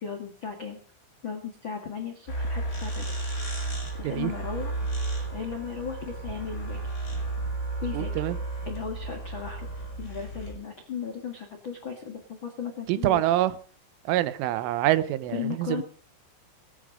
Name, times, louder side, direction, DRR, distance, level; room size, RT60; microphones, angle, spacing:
voice 1, 0.0-0.8 1.2-3.1 4.0-4.7 5.3-6.8 7.8-8.1 8.6-9.7 10.0-13.2 15.3-15.8, left 6 dB, 75° left, 1.1 m, -36 dB
sound 1, 2.3-10.5, right 2 dB, 15° left, 5.4 m, -33 dB
voice 2, 7.9-8.4 12.9-13.5 14.1-15.8, right 14 dB, 85° right, 3.4 m, -25 dB
18.0 x 12.5 x 5.1 m
omnidirectional pair, 5.5 m